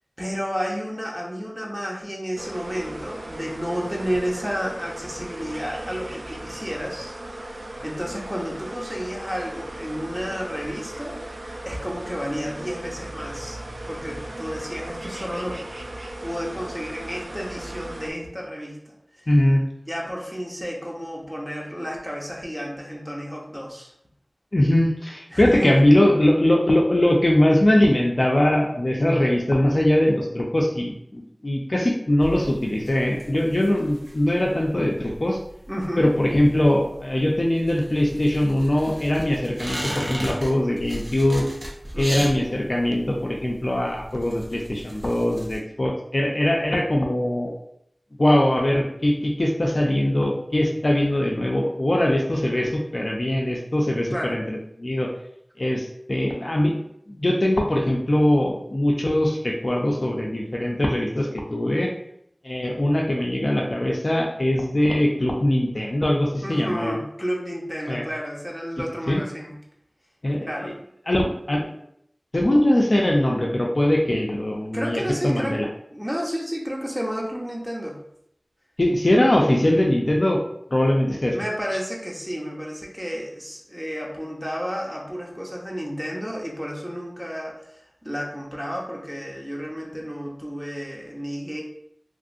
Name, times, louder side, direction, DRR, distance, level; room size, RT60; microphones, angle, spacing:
voice 1, 0.2-15.6 16.2-19.3 19.9-23.9 25.3-25.8 35.7-36.1 41.9-42.3 54.1-54.4 66.4-69.5 70.4-70.7 74.7-75.6 75.9-78.0 81.3-91.6, equal, 10° right, -2 dB, 0.7 m, -31 dB
sound 1, 2.4-18.1, right 1 dB, 80° right, 0.3 m, -37 dB
voice 2, 19.3-19.6 24.5-35.4 36.0-41.5 42.0-47.5 48.2-55.1 55.6-56.8 57.1-61.9 62.4-66.9 67.9-68.0 69.1-69.2 70.2-70.7 71.1-71.7 72.3-75.7 78.8-80.4 80.7-81.4, left 1 dB, 55° left, -1 dB, 0.5 m, -21 dB
sound 2, 32.2-45.6, equal, 55° right, 0.8 m, -36 dB
3.0 x 2.6 x 2.5 m, 0.73 s
wide cardioid pair, 50°, 0 cm